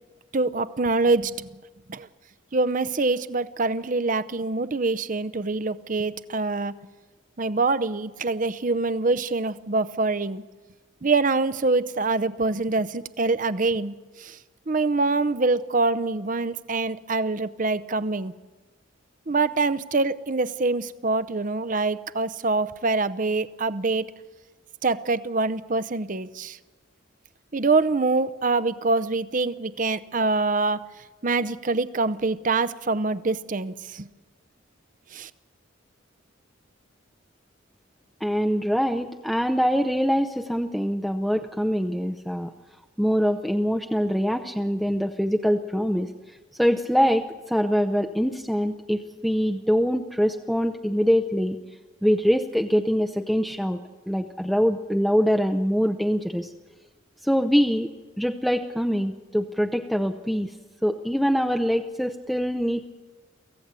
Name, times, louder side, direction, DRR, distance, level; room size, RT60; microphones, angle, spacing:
voice 1, 0.3-1.5 1.9-2.1 2.5-6.7 7.4-10.4 11.0-14.4 14.7-18.3 19.3-24.1 24.8-26.6 27.5-30.8 31.2-34.1 35.1-35.3, right 3 dB, 40° right, 13 dB, 0.7 m, -25 dB
voice 2, 38.2-42.5 43.0-46.1 46.6-51.6 52.0-53.8 54.1-56.5 57.2-57.9 58.2-60.5 60.8-62.9, equal, ahead, 4 dB, 0.6 m, -24 dB
24.0 x 16.0 x 8.2 m, 1.3 s
head